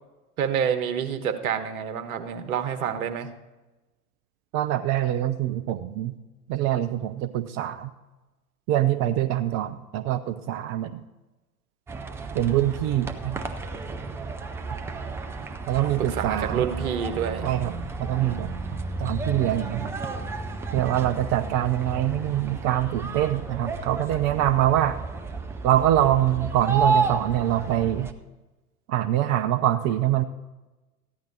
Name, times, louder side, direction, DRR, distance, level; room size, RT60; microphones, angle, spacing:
voice 1, 0.4-3.3 15.8-17.5 18.2-18.5, right 8 dB, 65° right, 7 dB, 1.5 m, -28 dB
voice 2, 4.5-6.1 6.5-7.9 8.7-11.0 12.3-13.4 15.6-16.6 17.4-17.7 18.0-19.9 20.7-25.0 25.6-28.1 28.9-30.2, right 12 dB, 35° right, 11 dB, 0.7 m, -24 dB
sound 1, 11.9-28.1, right 3 dB, 5° right, 0.3 m, -32 dB
14.5 x 10.5 x 4.1 m, 1.1 s
figure-of-eight pair, 90°, 46 cm